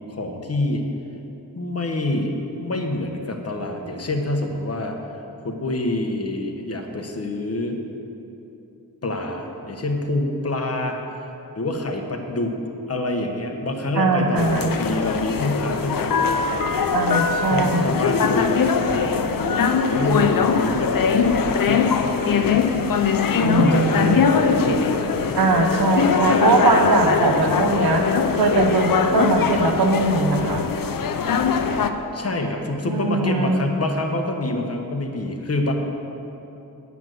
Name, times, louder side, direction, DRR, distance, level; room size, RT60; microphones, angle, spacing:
voice 1, 0.1-0.8 1.5-2.3 2.6-5.0 5.4-7.8 9.0-11.3 11.5-12.6 12.9-16.7 17.5-25.0 26.3-27.1 32.1-35.7, left 2 dB, 40° left, 2 dB, 1.2 m, -27 dB
voice 2, 13.9-14.7 16.9-18.0 23.4-24.2 25.3-28.0 28.3-30.7 32.8-33.6, right 3 dB, 75° right, 4 dB, 1.0 m, -20 dB
sound 1, 14.4-31.9, left 6 dB, 65° left, 0.6 m, -21 dB
9.1 x 6.0 x 7.7 m, 2.9 s
wide cardioid pair, 85°, 37 cm